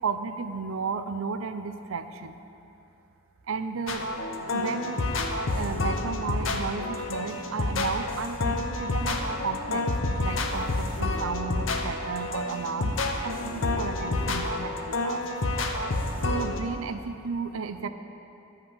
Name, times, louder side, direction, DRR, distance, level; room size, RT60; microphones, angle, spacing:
voice 1, 0.0-2.4 3.5-4.1 4.5-5.1 5.6-9.9 10.2-15.2 16.2-17.9, right 5 dB, 75° right, 9 dB, 0.5 m, -33 dB
sound 1, 3.9-16.6, left 2 dB, 65° left, 0.8 m, -29 dB
12.0 x 5.6 x 7.2 m, 2.8 s
head